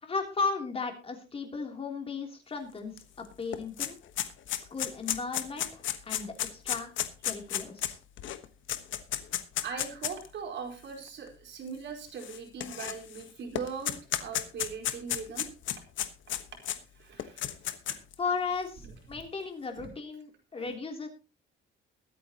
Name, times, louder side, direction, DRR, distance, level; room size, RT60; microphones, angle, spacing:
voice 1, 0.0-4.0 4.5-6.9 7.2-8.0 18.2-21.1, left 4 dB, 30° left, 3 dB, 3.2 m, -35 dB
sound 1, 3.0-3.1 3.3-10.3 11.0-11.1 12.2-13.2 13.6-16.8 17.2-18.1, left 11 dB, 70° left, 1.3 m, -33 dB
voice 2, 9.6-15.5 17.0-17.4 19.8-19.9 20.5-20.7, right 5 dB, 60° right, 2 dB, 4.6 m, -40 dB
22.0 x 9.1 x 3.0 m, 0.30 s
cardioid pair, 150°, 21 cm